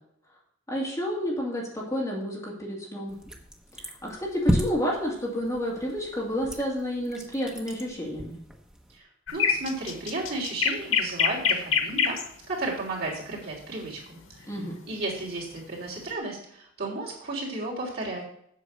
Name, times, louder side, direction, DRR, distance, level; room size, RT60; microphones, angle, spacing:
voice 1, 0.7-3.2 3.7-8.4 14.5-14.8, equal, 15° left, -4 dB, 2.5 m, -30 dB
sound 1, 3.1-9.0, equal, 5° right, 0.9 m, -34 dB
voice 2, 8.9-12.2 12.5-14.5 14.9-18.2, right 2 dB, 50° right, -3 dB, 3.4 m, -33 dB
sound 2, 9.3-12.3 14.3-14.6, left 6 dB, 90° left, 1.1 m, -25 dB
8.2 x 6.4 x 6.5 m, 0.68 s
head